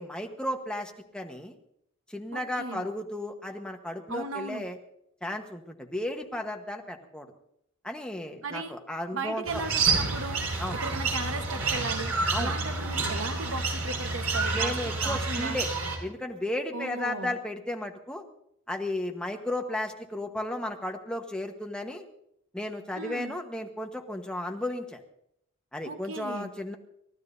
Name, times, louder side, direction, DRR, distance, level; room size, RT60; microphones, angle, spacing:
voice 1, 0.0-1.5 2.1-4.8 5.2-7.3 7.8-9.6 10.6-10.8 12.3-12.5 14.5-15.7 16.0-18.2 18.7-22.0 22.5-25.0 25.7-26.8, left 1 dB, 5° left, 3 dB, 1.2 m, -34 dB
voice 2, 2.3-2.9 4.1-4.7 8.4-8.8 9.1-10.5 10.7-15.6 16.7-17.3 22.9-23.3 25.8-26.5, right 3 dB, 65° right, 7 dB, 1.2 m, -36 dB
sound 1, 9.5-16.0, right 3 dB, 85° right, 5.2 m, -29 dB
30.0 x 14.0 x 2.7 m, 0.77 s
head